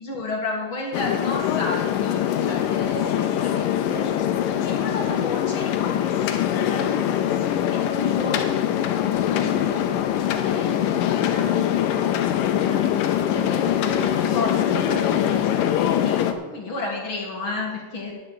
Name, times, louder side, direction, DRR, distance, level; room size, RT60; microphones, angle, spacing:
voice 1, 0.0-8.4 9.3-9.8 10.4-18.1, left 2 dB, 45° left, -1 dB, 2.1 m, -33 dB
sound 1, 0.9-16.3, left 10 dB, 80° left, 2.4 m, -23 dB
10.0 x 7.1 x 8.3 m, 1.3 s
omnidirectional pair, 3.9 m